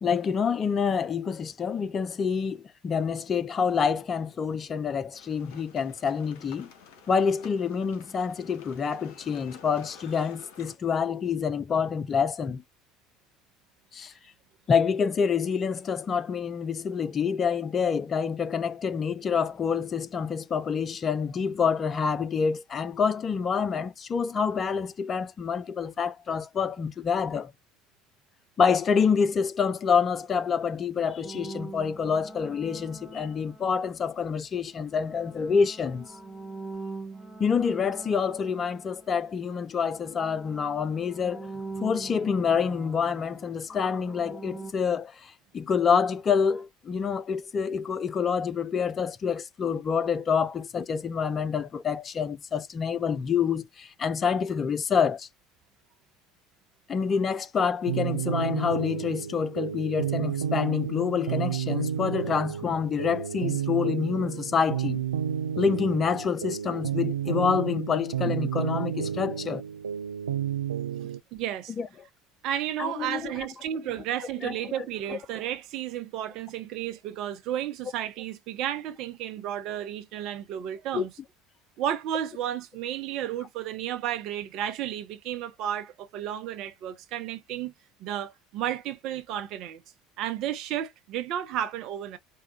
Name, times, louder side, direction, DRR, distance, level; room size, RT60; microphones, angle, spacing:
voice 1, 0.0-6.7 7.1-12.6 13.9-14.1 14.7-27.5 28.6-36.1 37.4-41.5 41.8-55.3 56.9-65.0 65.6-69.6 71.8-71.9 72.8-73.5 74.4-74.7 75.1-75.2 80.9-81.1, left 6 dB, 35° left, 0.6 m, -27 dB
sound 1, 5.1-10.8, left 5 dB, 65° left, 1.0 m, -51 dB
sound 2, 31.2-34.1 34.8-39.6 39.9-44.7, right 3 dB, 10° right, 1.0 m, -43 dB
sound 3, 57.9-71.2, right 8 dB, 80° right, 0.3 m, -31 dB
voice 2, 71.3-71.7 72.4-81.1 81.8-87.7 88.0-89.8 90.2-92.2, right 11 dB, 55° right, 0.8 m, -32 dB
4.7 x 2.4 x 2.8 m
figure-of-eight pair, 65°, 0 cm